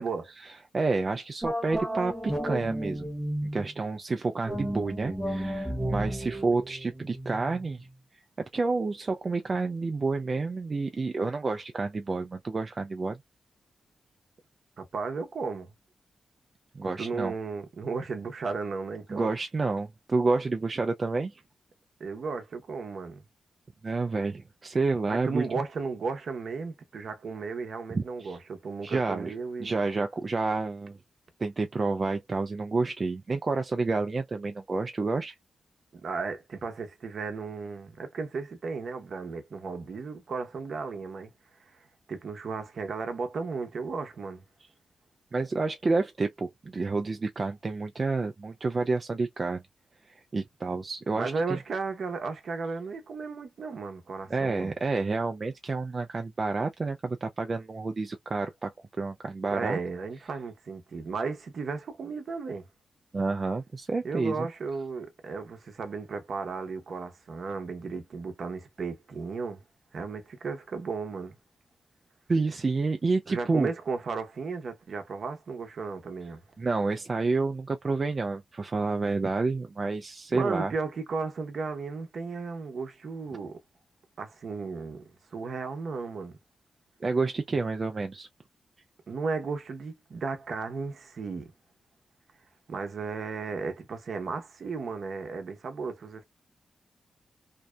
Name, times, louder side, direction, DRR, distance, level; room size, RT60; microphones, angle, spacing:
voice 1, 0.4-3.1 3.5-7.9 8.4-13.2 16.7-17.3 19.1-21.4 23.8-25.5 27.9-28.4 28.8-29.3 29.6-31.0 31.4-35.4 45.3-49.6 50.1-51.6 54.3-59.8 63.1-64.5 72.3-73.7 76.6-80.7 87.0-88.3, right 3 dB, 45° right, 0.3 m, -29 dB
sound 1, 1.4-3.7 4.4-7.8, right 1 dB, ahead, 1.0 m, -33 dB
voice 2, 14.8-15.7 17.0-19.3 22.0-23.2 25.1-29.8 35.9-41.3 41.6-41.7 42.1-44.4 51.1-54.7 59.5-62.6 64.0-69.6 69.9-71.4 73.3-76.4 80.3-83.6 84.2-85.0 85.3-86.4 89.1-91.5 92.7-96.2, right 4 dB, 70° right, 0.7 m, -34 dB
2.6 x 2.0 x 2.2 m
cardioid pair, 50°, 0 cm